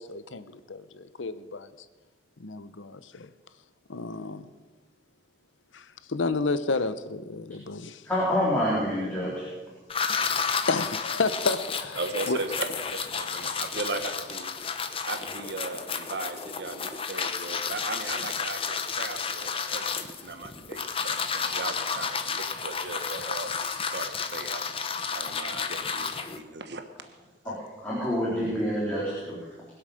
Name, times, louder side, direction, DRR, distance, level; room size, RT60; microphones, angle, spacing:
voice 1, 0.0-1.7 2.4-3.3 3.9-4.5 5.7-8.0 10.7-12.0 12.3-12.4 23.2-23.3 27.5-27.6, left 3 dB, 90° left, 0.8 m, -31 dB
voice 2, 8.0-9.5 27.5-27.6 27.8-29.3, equal, 5° left, 4.0 m, -27 dB
sound 1, 9.9-26.4, left 6 dB, 30° left, 0.8 m, -32 dB
voice 3, 11.9-14.5 15.0-24.6 25.1-26.1 26.4-26.8, right 3 dB, 60° right, 1.1 m, -37 dB
21.0 x 8.0 x 6.5 m
head